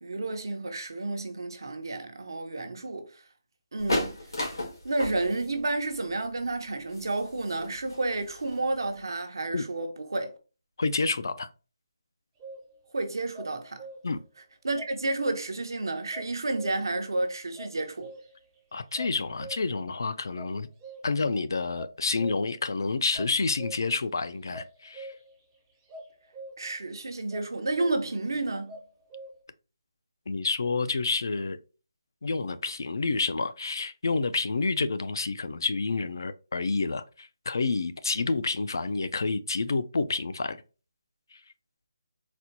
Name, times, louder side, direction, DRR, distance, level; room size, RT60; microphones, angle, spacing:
voice 1, 0.0-3.1 3.7-4.1 4.8-10.3 12.9-13.8 14.6-18.1 26.6-28.8, right 2 dB, 75° right, 0.8 m, -31 dB
sound 1, 3.8-9.0, left 1 dB, 90° left, 1.7 m, -34 dB
voice 2, 10.8-11.5 14.0-14.2 18.7-20.7 21.0-25.1 30.3-31.6 32.2-40.6 41.3-41.4, left 3 dB, 60° left, 0.4 m, -29 dB
sound 2, 12.4-12.9 13.3-14.3 14.7-15.7 16.1-17.0 17.5-18.6 18.9-19.9 20.3-21.4 21.7-22.7 23.1-24.1 24.5-25.4 25.9-26.8 27.3-28.3 28.7-29.4, right 2 dB, 10° right, 0.4 m, -45 dB
4.2 x 2.2 x 2.7 m
hypercardioid pair, 175°, 2 cm